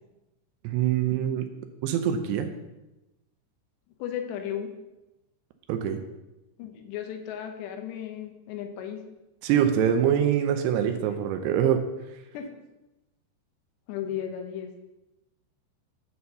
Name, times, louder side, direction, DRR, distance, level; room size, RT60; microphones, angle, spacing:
voice 1, 0.6-1.5 1.8-2.5 5.7-6.0 9.4-11.8, right 9 dB, 80° right, 6 dB, 2.7 m, -24 dB
voice 2, 4.0-4.7 6.6-9.0 12.3-12.5 13.9-14.7, left 9 dB, 80° left, 5 dB, 3.0 m, -35 dB
9.4 x 4.3 x 6.8 m, 0.99 s
omnidirectional pair, 5.1 m